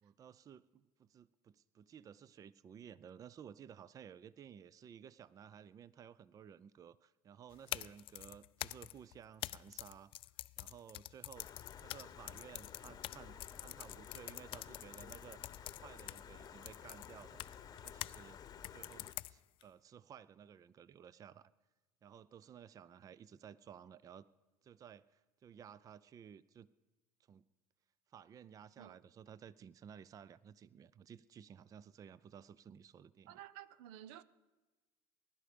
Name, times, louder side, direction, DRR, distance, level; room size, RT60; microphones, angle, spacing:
voice 1, 0.0-10.1 10.6-11.5 11.8-15.4 15.8-17.5 17.8-18.4 18.7-21.5 22.0-24.3 24.6-26.7 27.3-27.4 28.1-33.4, right 8 dB, 30° right, 0.4 m, -56 dB
sound 1, 7.5-18.2 18.6-19.6, left 16 dB, 50° left, 0.4 m, -47 dB
Stream, 11.4-19.1, left 8 dB, 35° left, 0.9 m, -54 dB
voice 2, 33.3-34.2, right 12 dB, 75° right, 0.6 m, -52 dB
21.0 x 11.5 x 5.0 m
supercardioid pair, 105°, 12 cm